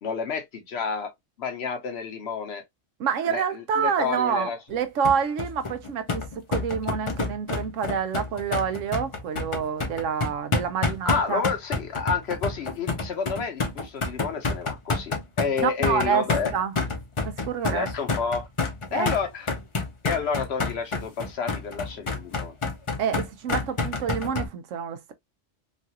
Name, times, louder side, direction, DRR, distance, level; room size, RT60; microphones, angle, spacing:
voice 1, 0.0-1.1 1.4-2.6 3.3-4.6 11.0-16.5 17.7-18.5 18.9-19.5 20.0-22.5, left 5 dB, 65° left, 1.0 m, -30 dB
voice 2, 3.0-11.4 15.6-16.2 16.5-16.7 17.2-17.9 18.9-19.1 23.0-25.1, right 7 dB, 85° right, 1.0 m, -27 dB
sound 1, 5.0-24.5, left 3 dB, 35° left, 0.6 m, -28 dB
3.1 x 2.4 x 2.7 m
omnidirectional pair, 1.2 m